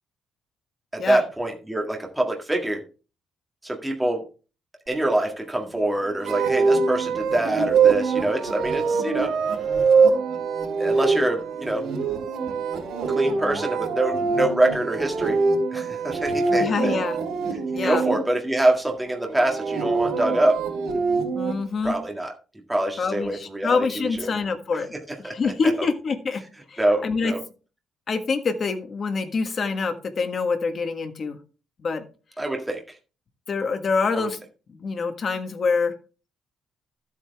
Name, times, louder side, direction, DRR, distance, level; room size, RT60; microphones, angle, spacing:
voice 1, 0.9-2.8 3.6-4.2 4.9-9.3 10.8-11.8 13.1-15.4 15.7-17.0 17.8-20.6 21.8-22.3 22.7-23.9 24.2-24.3 24.7-24.8 25.2-25.3 26.8-27.4 32.4-32.8 34.1-34.3, right 1 dB, 5° right, 1 dB, 1.8 m, -25 dB
sound 1, 6.2-18.2 19.3-21.5, right 4 dB, 80° right, 3.8 m, -23 dB
voice 2, 16.5-17.2 17.7-18.0 21.3-22.0 23.0-24.9 25.2-26.4 26.7-27.3 28.1-31.4 31.8-32.0 33.5-34.4 34.7-35.9, left 4 dB, 35° left, 6 dB, 1.5 m, -25 dB
12.5 x 8.1 x 3.5 m, 0.34 s
cardioid pair, 165°, 0 cm